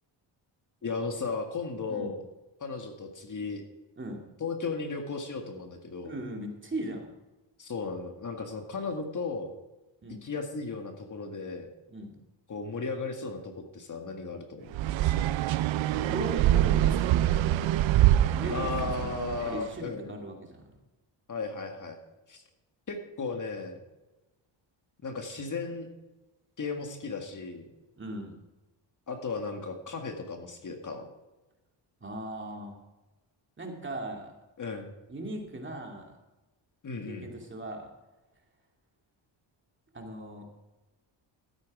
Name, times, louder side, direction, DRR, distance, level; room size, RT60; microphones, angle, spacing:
voice 1, 0.8-2.2 2.6-3.6 4.4-6.2 7.6-9.5 10.2-11.7 12.5-13.4 13.7-14.7 18.5-20.2 21.3-22.0 22.3-22.4 22.9-23.8 25.0-25.9 26.6-27.7 29.1-31.0 34.6-34.9 36.8-37.3, left 4 dB, 40° left, 4 dB, 1.8 m, -35 dB
voice 2, 6.0-7.2 10.0-10.2 11.9-12.2 15.8-17.8 18.3-20.8 28.0-28.4 32.0-32.8 33.6-34.3 35.1-36.2 37.1-37.9 39.9-40.5, right 1 dB, 25° right, 1 dB, 2.5 m, -39 dB
sound 1, 14.7-19.6, right 13 dB, 75° right, 0.6 m, -25 dB
13.0 x 8.8 x 4.9 m, 1.1 s
cardioid pair, 95°, 47 cm